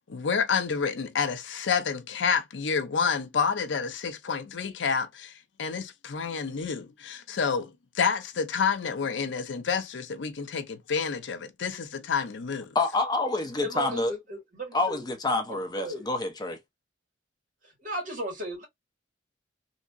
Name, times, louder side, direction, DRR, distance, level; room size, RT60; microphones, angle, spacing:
voice 1, 0.1-12.7, left 6 dB, 80° left, 0.6 m, -29 dB
voice 2, 12.7-14.1 14.7-16.6, left 2 dB, 20° left, 0.6 m, -27 dB
voice 3, 13.6-15.1 15.5-16.1 17.6-18.7, right 1 dB, 45° right, 2.0 m, -36 dB
3.2 x 2.8 x 2.5 m
head